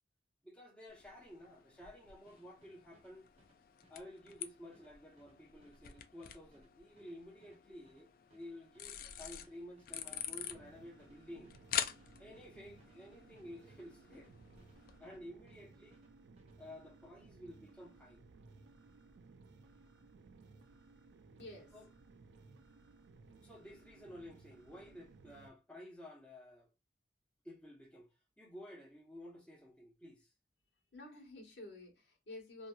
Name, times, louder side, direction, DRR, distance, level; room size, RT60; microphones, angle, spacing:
voice 1, 0.4-3.2 3.9-11.5 12.2-14.3 15.0-16.0 16.6-18.2 21.7-21.9 23.4-26.7 27.4-30.3, left 1 dB, 5° left, 0.7 m, -53 dB
sound 1, 0.9-15.0, left 10 dB, 55° left, 0.3 m, -47 dB
sound 2, 2.3-15.2 15.5-16.6, right 1 dB, 35° right, 0.7 m, -70 dB
sound 3, 9.9-25.5, right 3 dB, 90° right, 0.4 m, -60 dB
voice 2, 21.4-21.8 30.9-32.7, left 2 dB, 85° left, 1.3 m, -50 dB
2.8 x 2.6 x 2.2 m
head